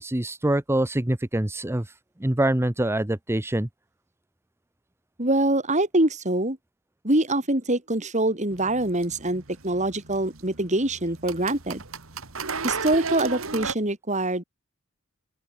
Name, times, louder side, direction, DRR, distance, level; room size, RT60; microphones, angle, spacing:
voice 1, 0.0-1.9 2.2-3.7, right 1 dB, 10° right, 0.8 m, -25 dB
voice 2, 5.2-6.6 7.0-11.8 12.6-14.4, right 1 dB, 35° right, 4.6 m, -24 dB
sound 1, 8.5-13.8, right 5 dB, 90° right, 2.5 m, -35 dB
open air
head